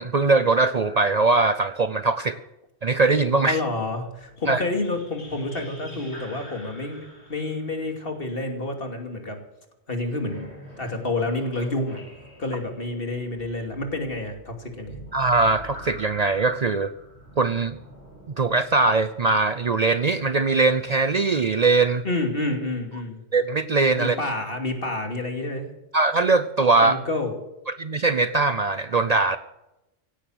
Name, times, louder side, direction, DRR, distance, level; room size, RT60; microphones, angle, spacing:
voice 1, 0.0-2.4 2.8-3.6 4.5-4.6 15.1-16.9 17.4-17.8 18.4-22.0 23.3-24.2 25.9-27.0 27.8-29.4, right 3 dB, 45° right, 12 dB, 0.6 m, -21 dB
voice 2, 3.5-9.4 9.9-10.5 10.8-12.0 12.4-14.9 22.0-23.2 24.0-25.7 26.8-27.4, left 2 dB, 60° left, 4 dB, 2.8 m, -29 dB
sound 1, 4.0-9.0 10.1-21.5, equal, 80° left, 4.7 m, -46 dB
17.0 x 10.0 x 7.9 m, 0.91 s
omnidirectional pair, 1.1 m